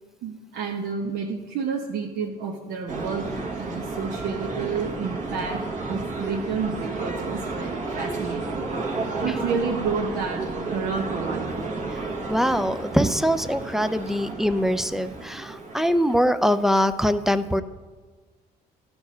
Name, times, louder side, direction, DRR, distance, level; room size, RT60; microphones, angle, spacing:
voice 1, 0.2-3.3 3.6-5.6 5.9-8.4 9.2-10.4 10.7-11.5, right 5 dB, 75° right, 1 dB, 1.0 m, -30 dB
sound 1, 2.9-16.1, right 3 dB, 50° right, 1.4 m, -32 dB
voice 2, 12.3-17.6, equal, ahead, 12 dB, 0.4 m, -23 dB
13.0 x 4.6 x 5.6 m, 1.4 s
cardioid pair, 110°, 17 cm